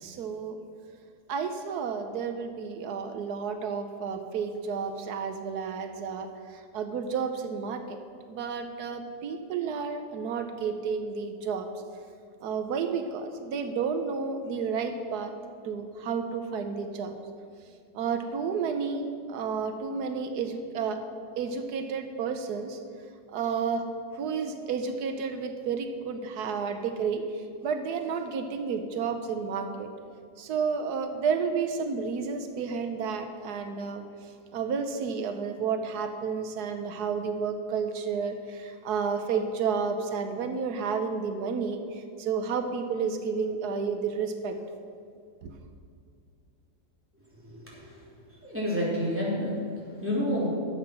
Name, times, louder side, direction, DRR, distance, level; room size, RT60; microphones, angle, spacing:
voice 1, 0.0-0.6 1.3-6.3 6.7-8.0 8.3-11.7 12.4-15.3 15.6-17.2 17.9-21.0 21.4-22.8 23.3-23.8 24.2-27.2 27.6-29.9 30.4-34.0 34.5-44.6 45.4-45.5, right 5 dB, 90° right, 7 dB, 1.4 m, -31 dB
voice 2, 48.4-49.7 50.0-50.5, equal, 10° right, -7 dB, 3.4 m, -28 dB
12.5 x 8.0 x 6.0 m, 2.3 s
omnidirectional pair, 1.6 m